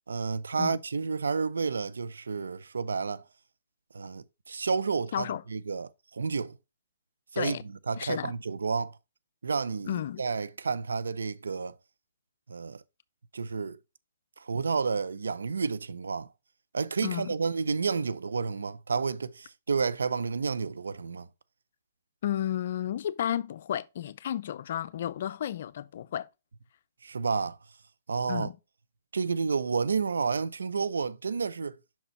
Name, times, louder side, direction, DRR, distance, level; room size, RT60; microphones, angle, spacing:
voice 1, 0.1-3.2 3.9-6.6 7.3-9.0 9.4-11.7 12.5-12.8 13.3-13.8 14.4-16.3 16.7-21.3 27.0-27.6 28.1-28.5 29.1-31.8, right 5 dB, 85° right, 0.5 m, -30 dB
voice 2, 8.0-8.3 9.9-10.2 17.0-17.3 22.2-26.3 28.3-28.6, left 11 dB, 60° left, 0.4 m, -32 dB
5.9 x 4.2 x 4.3 m
hypercardioid pair, 135°, 0 cm